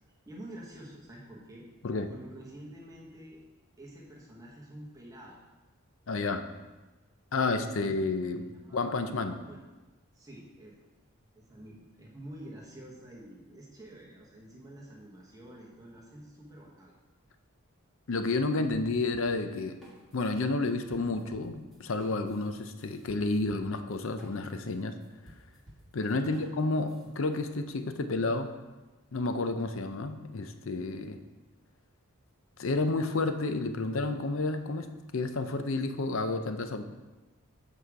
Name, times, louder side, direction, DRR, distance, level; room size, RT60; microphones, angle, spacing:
voice 1, 0.3-1.7 2.1-3.4 3.8-5.4 7.4-8.0 8.4-9.6 10.1-10.8 11.3-16.9 26.1-26.5, right 1 dB, 15° right, -4 dB, 1.1 m, -48 dB
voice 2, 6.1-6.5 7.3-8.4 8.7-9.4 18.1-19.8 20.1-24.9 25.9-28.5 29.1-31.2 32.6-36.8, left 3 dB, 60° left, 8 dB, 0.6 m, -30 dB
sound 1, 18.7-20.4 20.6-27.4, equal, ahead, 1.7 m, -55 dB
7.9 x 4.9 x 4.7 m, 1.2 s
head